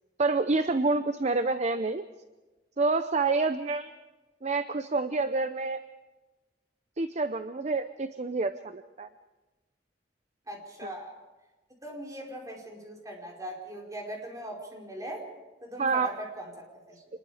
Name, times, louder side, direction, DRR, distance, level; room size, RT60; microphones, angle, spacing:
voice 1, 0.2-2.0 2.8-3.9 4.4-5.8 7.0-9.1 10.8-10.9 15.8-16.1, right 3 dB, 40° right, 10 dB, 0.7 m, -28 dB
voice 2, 10.5-11.1 11.8-15.3 15.6-17.0, equal, 20° right, -1 dB, 4.8 m, -40 dB
26.5 x 21.0 x 5.0 m, 1.2 s
head